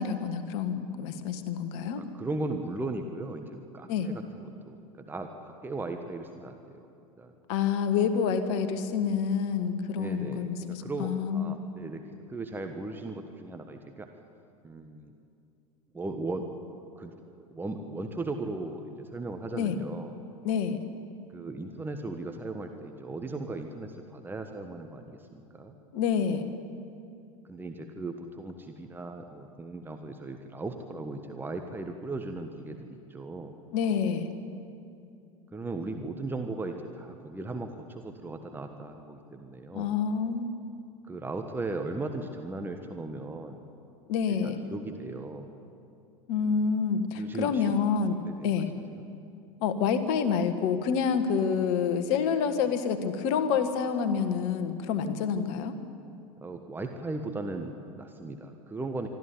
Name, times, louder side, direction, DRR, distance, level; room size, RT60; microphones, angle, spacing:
voice 1, 0.0-2.0 3.9-4.1 7.5-11.6 19.5-19.8 20.4-20.8 25.9-26.4 33.7-34.3 39.7-40.5 44.1-44.6 46.3-48.2 48.4-48.7 49.6-55.8, left 6 dB, 50° left, 9 dB, 1.7 m, -28 dB
voice 2, 2.0-6.9 7.2-7.3 9.9-14.1 14.6-15.1 15.9-16.5 17.0-17.1 17.5-20.1 21.3-25.7 27.5-33.5 35.5-39.9 41.1-43.6 44.3-45.5 47.1-47.8 48.2-48.5 48.9-49.0 56.4-59.1, right 2 dB, 10° right, 5 dB, 1.4 m, -37 dB
24.0 x 14.0 x 9.9 m, 2.6 s
figure-of-eight pair, 85°, 19 cm